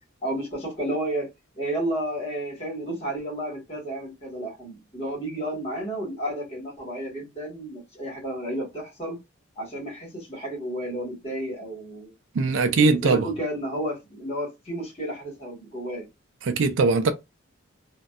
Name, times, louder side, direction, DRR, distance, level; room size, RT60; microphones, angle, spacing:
voice 1, 0.2-1.3 1.5-9.2 9.6-12.1 12.7-16.0, right 1 dB, 30° left, 1.4 m, -32 dB
voice 2, 12.3-13.3 16.4-17.1, right 4 dB, 65° right, 0.4 m, -20 dB
2.6 x 2.1 x 2.3 m
head